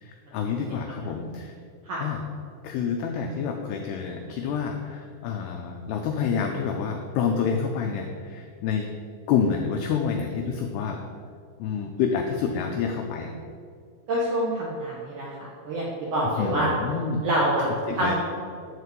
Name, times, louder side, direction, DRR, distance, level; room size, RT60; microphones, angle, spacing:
voice 1, 0.0-1.5 2.0-2.2 2.6-8.9 9.3-11.0 11.6-13.3 16.4-17.2 17.9-18.2, left 6 dB, 85° left, 3 dB, 2.3 m, -28 dB
voice 2, 14.1-16.7 17.2-18.1, right 1 dB, 65° right, -5 dB, 1.9 m, -26 dB
11.5 x 4.6 x 8.2 m, 2.2 s
omnidirectional pair, 5.7 m